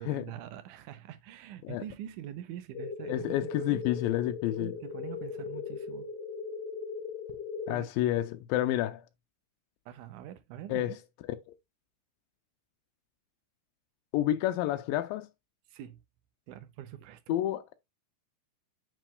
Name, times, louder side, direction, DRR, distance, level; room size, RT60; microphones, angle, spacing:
voice 1, 0.0-3.8 4.5-6.1 7.7-7.9 9.9-11.0 15.7-16.0 16.5-17.4, right 11 dB, 75° right, 2.0 m, -44 dB
sound 1, 2.7-7.7, left 5 dB, 55° left, 2.4 m, -38 dB
voice 2, 3.1-4.7 7.7-9.1 10.7-11.0 11.5-11.6 14.1-15.3 17.3-17.8, left 13 dB, 85° left, 2.3 m, -29 dB
7.4 x 6.0 x 2.3 m
omnidirectional pair, 4.0 m